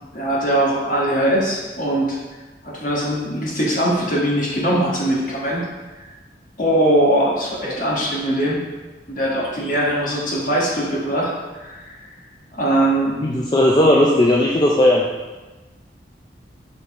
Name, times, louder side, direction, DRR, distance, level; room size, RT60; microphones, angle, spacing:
voice 1, 0.1-2.2 2.6-5.6 6.6-8.6 9.1-12.0 12.5-13.2, right 1 dB, 50° left, -5 dB, 1.5 m, -21 dB
voice 2, 13.2-15.0, left 1 dB, 25° left, -3 dB, 0.4 m, -16 dB
7.1 x 4.1 x 3.6 m, 1.2 s
head